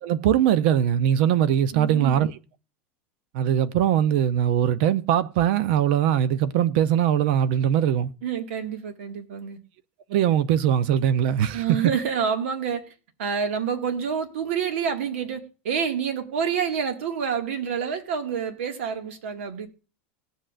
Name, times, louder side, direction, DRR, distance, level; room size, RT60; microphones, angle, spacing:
voice 1, 0.0-2.3 3.3-8.1 10.1-11.8, right 10 dB, 50° right, 0.6 m, -21 dB
voice 2, 1.7-2.2 8.2-9.6 11.5-12.8 13.2-19.7, right 7 dB, 90° right, 1.8 m, -28 dB
20.0 x 7.8 x 2.5 m
supercardioid pair, 170°, 7 cm